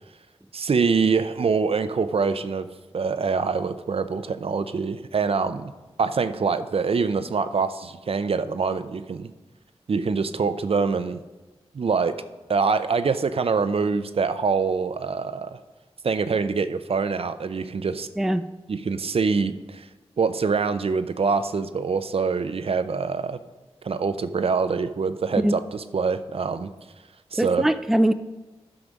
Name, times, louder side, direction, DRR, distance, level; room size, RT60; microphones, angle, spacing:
voice 1, 0.5-2.7 2.9-5.7 6.0-9.3 9.9-11.2 11.7-12.1 12.5-15.6 16.0-18.1 18.7-19.9 20.2-23.4 23.8-26.7 27.3-27.7, right 5 dB, 60° right, 11 dB, 0.5 m, -24 dB
voice 2, 18.2-18.5 25.4-25.5 27.3-28.1, right 1 dB, 5° right, 11 dB, 0.4 m, -21 dB
9.9 x 5.9 x 5.2 m, 1.2 s
cardioid pair, 50°, 11 cm